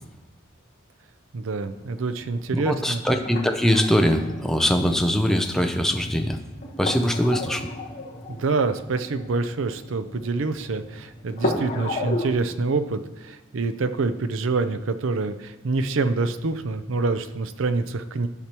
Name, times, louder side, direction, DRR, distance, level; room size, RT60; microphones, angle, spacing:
voice 1, 1.3-3.0 8.3-18.3, right 3 dB, 80° right, 11 dB, 0.5 m, -26 dB
sound 1, 1.6-12.3, left 2 dB, 45° left, 1.2 m, -35 dB
voice 2, 2.5-6.4 6.8-7.7, equal, ahead, 4 dB, 0.5 m, -22 dB
13.0 x 5.9 x 3.0 m, 1.2 s
head